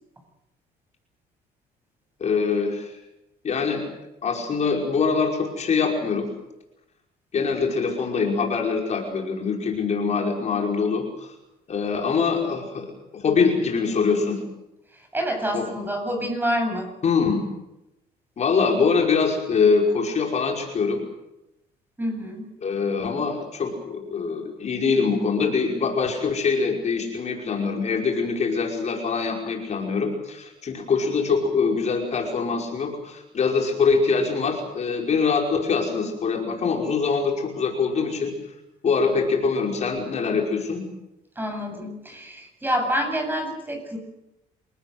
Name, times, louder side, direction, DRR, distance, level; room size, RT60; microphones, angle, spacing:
voice 1, 2.2-2.9 3.4-3.8 4.2-6.3 7.3-11.3 11.7-12.9 13.1-14.4 15.5-15.7 17.0-17.4 18.4-21.0 22.6-38.3 38.8-40.8, left 5 dB, 40° left, 1 dB, 5.4 m, -23 dB
voice 2, 15.1-16.8 22.0-22.5 41.4-44.0, equal, 10° right, 4 dB, 7.9 m, -27 dB
27.5 x 18.5 x 8.1 m, 0.89 s
cardioid pair, 110°, 17 cm